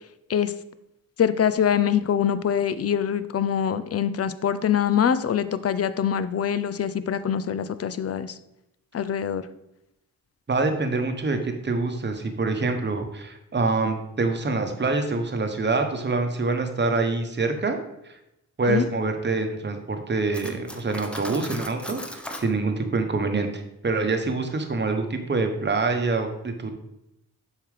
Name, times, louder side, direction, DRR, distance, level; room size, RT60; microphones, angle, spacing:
voice 1, 1.2-8.4 8.9-9.4 18.7-18.9, left 8 dB, 45° left, 13 dB, 0.5 m, -24 dB
voice 2, 10.5-17.8 18.0-18.1 18.6-26.7, right 3 dB, 30° right, 5 dB, 1.0 m, -25 dB
Cutlery silverware, 20.3-22.5, equal, 5° left, 0.7 m, -37 dB
7.1 x 4.6 x 3.3 m, 0.86 s
cardioid pair, 65°, 34 cm